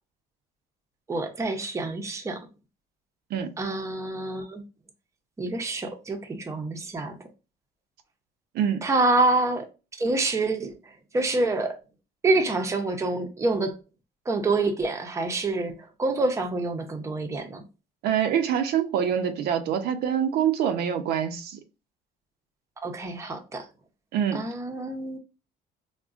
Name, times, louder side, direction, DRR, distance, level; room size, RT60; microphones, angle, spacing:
voice 1, 1.1-2.5 3.6-4.6 5.4-7.2 8.8-9.7 10.0-11.8 12.2-13.8 14.3-17.6 22.8-23.7 24.3-25.2, right 2 dB, 15° right, 0.5 m, -27 dB
voice 2, 18.0-21.6 24.1-24.4, right 9 dB, 70° right, 0.5 m, -25 dB
3.6 x 2.1 x 2.4 m
cardioid pair, 110°, 17 cm